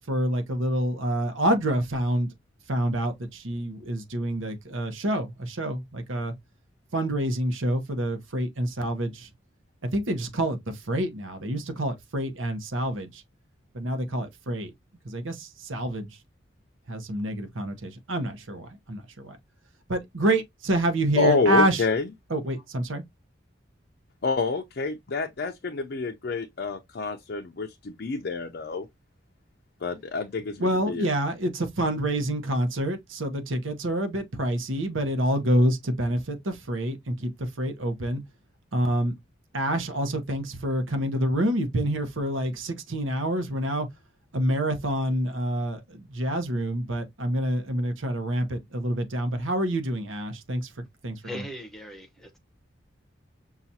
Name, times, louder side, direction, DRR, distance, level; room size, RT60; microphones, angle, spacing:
voice 1, 0.1-2.3 2.7-6.3 6.9-9.3 9.9-13.2 13.7-14.7 15.0-16.2 16.9-19.4 19.9-21.8 22.3-23.0 30.6-38.2 38.7-39.1 39.5-43.9 44.3-50.7 51.0-51.5, right 1 dB, 80° right, 0.9 m, -27 dB
voice 2, 21.2-22.1 24.2-28.9 29.8-31.1, left 4 dB, 55° left, 0.5 m, -27 dB
voice 3, 51.2-52.4, equal, ahead, 0.7 m, -39 dB
5.7 x 2.4 x 2.7 m
head